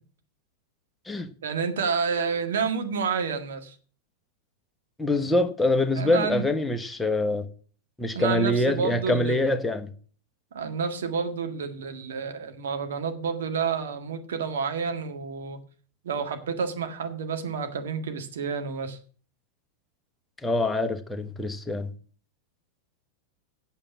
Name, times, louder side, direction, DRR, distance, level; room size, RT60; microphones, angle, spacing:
voice 1, 1.4-3.8 6.0-6.4 8.1-9.5 10.5-15.6 16.0-19.0, right 5 dB, 60° right, 1.7 m, -29 dB
voice 2, 5.0-7.4 8.0-9.9 20.4-21.9, left 2 dB, 10° left, 1.1 m, -25 dB
8.9 x 7.4 x 8.1 m
figure-of-eight pair, 90°, 0 cm